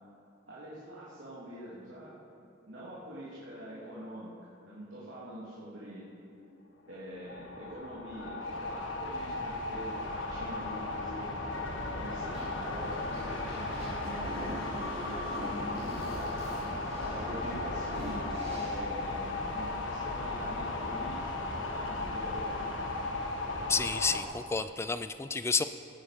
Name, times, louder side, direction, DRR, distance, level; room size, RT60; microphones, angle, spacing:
voice 1, 0.5-2.2 2.7-4.3 4.6-6.1 6.9-11.4 11.9-16.4 17.0-18.3 18.6-21.3 21.6-22.7, right 1 dB, 85° right, -8 dB, 2.8 m, -45 dB
sound 1, 6.9-24.2, left 2 dB, 85° left, 1.5 m, -36 dB
sound 2, 12.3-18.8, equal, 35° right, 3.6 m, -44 dB
voice 2, 23.7-25.6, left 4 dB, 15° left, 11 dB, 0.3 m, -30 dB
17.5 x 9.7 x 5.1 m, 2.7 s
head